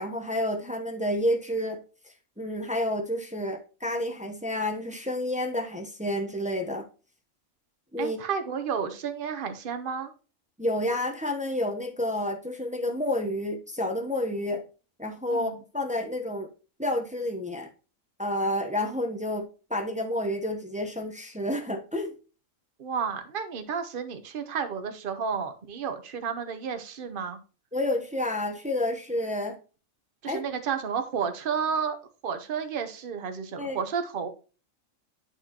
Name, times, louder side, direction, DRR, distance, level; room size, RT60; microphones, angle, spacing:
voice 1, 0.0-1.8 2.4-6.9 7.9-8.2 10.6-14.6 15.0-16.5 16.8-17.7 18.2-22.1 27.7-29.6 30.3-30.4 33.6-33.8, left 1 dB, 5° right, 3 dB, 0.7 m, -29 dB
voice 2, 8.0-10.1 15.3-15.5 22.8-27.4 30.2-32.0 32.2-34.3, right 6 dB, 45° right, 8 dB, 1.0 m, -31 dB
10.5 x 4.4 x 3.0 m, 0.35 s
omnidirectional pair, 1.5 m